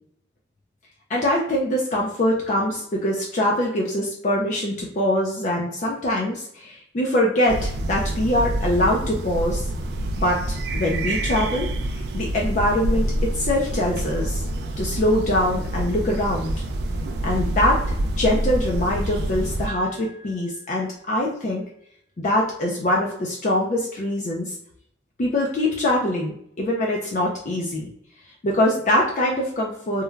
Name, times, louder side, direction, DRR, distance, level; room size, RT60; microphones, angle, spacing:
voice 1, 1.1-9.7 10.2-14.5 14.8-16.5 17.2-17.8 18.2-21.6 22.2-24.6 25.2-27.9 28.4-30.0, left 1 dB, 40° left, -2 dB, 0.4 m, -23 dB
sound 1, 7.5-19.7, right 1 dB, 60° right, 0.3 m, -27 dB
Piano, 19.7-21.6, right 2 dB, 35° right, 0.7 m, -45 dB
3.0 x 2.2 x 2.3 m, 0.71 s
head